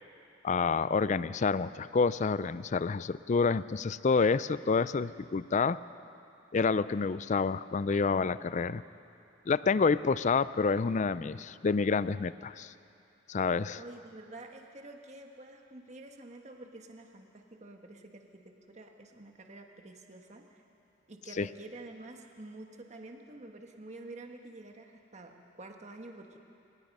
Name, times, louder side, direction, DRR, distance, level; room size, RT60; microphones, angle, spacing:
voice 1, 0.4-5.8 6.5-8.8 9.5-12.7 13.3-13.8 21.4-21.5, left 4 dB, 40° left, 16 dB, 0.4 m, -28 dB
voice 2, 13.8-20.6 21.1-26.4, right 2 dB, 35° right, 3 dB, 1.4 m, -48 dB
25.5 x 19.0 x 5.4 m, 2.7 s
head